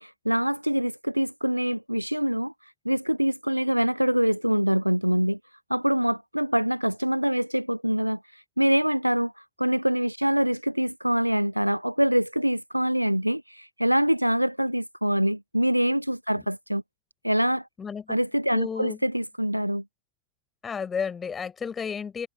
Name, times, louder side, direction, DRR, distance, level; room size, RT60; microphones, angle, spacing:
voice 1, 0.0-5.4 5.7-16.8 17.2-17.7 18.1-19.8, equal, 90° right, 0.6 m, -25 dB
voice 2, 17.8-18.2 18.5-19.0 20.6-22.3, left 6 dB, 20° left, 5.7 m, -32 dB
figure-of-eight pair, 90°, 0 cm